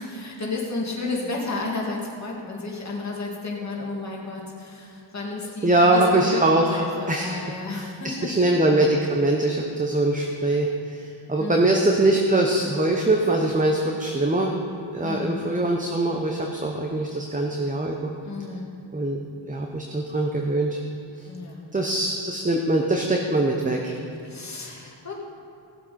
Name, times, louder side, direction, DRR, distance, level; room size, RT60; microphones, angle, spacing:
voice 1, 0.0-6.4 6.7-8.3 11.4-11.8 15.0-15.4 18.2-18.7 21.3-21.7 23.7-25.2, left 3 dB, 35° left, -3 dB, 2.5 m, -32 dB
voice 2, 5.6-6.8 7.1-14.6 14.9-18.1 18.9-19.2 19.5-20.8 21.2-21.3 21.7-24.0, right 2 dB, 15° right, 1 dB, 0.9 m, -22 dB
18.0 x 7.6 x 4.3 m, 2.5 s
wide cardioid pair, 100°, 46 cm